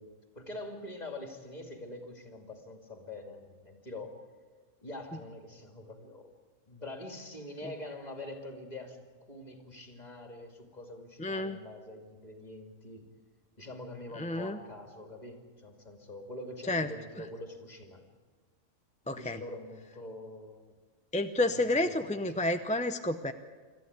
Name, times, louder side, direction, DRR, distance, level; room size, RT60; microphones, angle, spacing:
voice 1, 0.0-4.2 4.8-6.3 6.7-13.1 13.6-18.0 19.0-20.7 21.4-22.4, left 1 dB, 30° left, 4 dB, 2.6 m, -45 dB
voice 2, 11.2-11.6 14.2-14.6 16.7-16.9 19.1-19.4 21.1-23.3, left 2 dB, 10° left, 8 dB, 0.5 m, -30 dB
26.0 x 14.0 x 9.6 m, 1.5 s
omnidirectional pair, 1.3 m